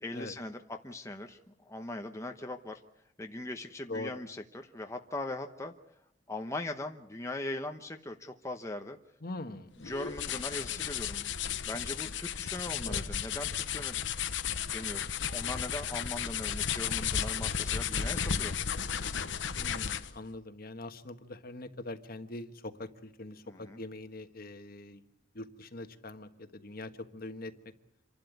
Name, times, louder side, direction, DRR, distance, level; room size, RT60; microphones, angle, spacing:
voice 1, 0.0-2.8 3.2-5.7 6.3-9.0 9.8-11.3 11.6-14.0 14.7-18.6 23.5-23.8, left 2 dB, 15° left, 4 dB, 1.0 m, -40 dB
voice 2, 9.2-9.7 12.8-13.0 19.6-25.0 25.3-27.5, left 2 dB, 55° left, 8 dB, 1.5 m, -43 dB
sound 1, 9.8-20.2, left 8 dB, 75° left, 0.9 m, -34 dB
27.0 x 12.0 x 9.4 m, 0.79 s
head